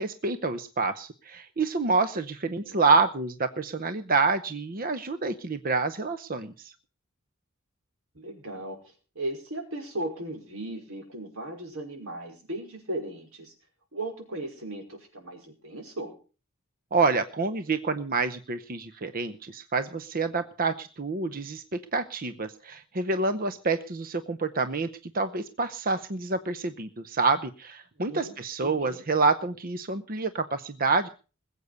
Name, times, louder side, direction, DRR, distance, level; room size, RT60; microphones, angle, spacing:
voice 1, 0.0-6.7 16.9-24.9 25.1-31.1, right 3 dB, 45° right, 12 dB, 0.8 m, -27 dB
voice 2, 8.2-8.8 9.2-13.5 13.9-16.1 28.1-29.0, right 1 dB, 85° right, 4 dB, 5.3 m, -37 dB
21.0 x 8.2 x 6.6 m, 0.37 s
head